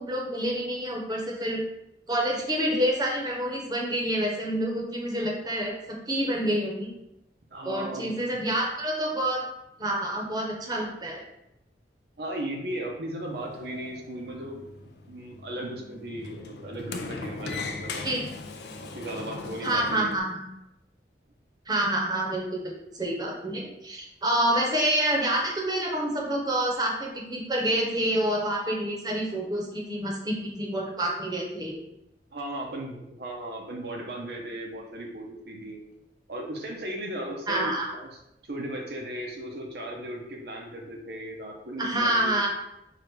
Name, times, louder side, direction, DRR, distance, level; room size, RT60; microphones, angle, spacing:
voice 1, 0.0-1.6 2.1-6.9 7.6-9.4 9.8-11.2 18.0-18.3 19.6-20.4 21.7-31.7 37.5-37.9 41.8-42.5, right 1 dB, 20° right, -1 dB, 0.9 m, -28 dB
voice 2, 7.5-8.2 12.2-14.7 15.1-18.1 18.9-20.1 32.3-35.8 36.3-38.1 38.4-42.5, right 1 dB, 60° right, 0 dB, 0.7 m, -36 dB
Sliding door, 13.2-20.2, left 3 dB, 65° left, 0.5 m, -39 dB
4.8 x 2.4 x 4.6 m, 0.86 s
head